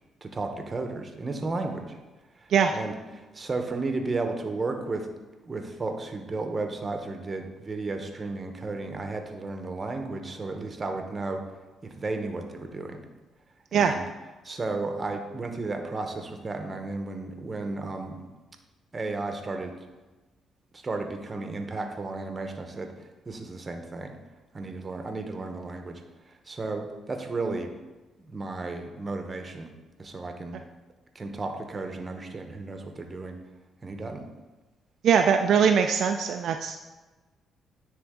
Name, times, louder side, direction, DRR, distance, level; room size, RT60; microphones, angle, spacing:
voice 1, 0.2-1.9 2.4-5.1 5.4-11.4 11.8-13.0 13.7-14.1 14.4-18.2 18.9-19.7 20.7-24.2 24.5-26.0 26.5-27.7 28.2-29.7 30.0-30.6 31.1-33.4 33.8-34.3, right 3 dB, 30° right, 5 dB, 0.9 m, -33 dB
voice 2, 35.0-36.9, right 7 dB, 65° right, 5 dB, 0.3 m, -22 dB
9.7 x 3.5 x 3.7 m, 1.2 s
cardioid pair, 90°, 0 cm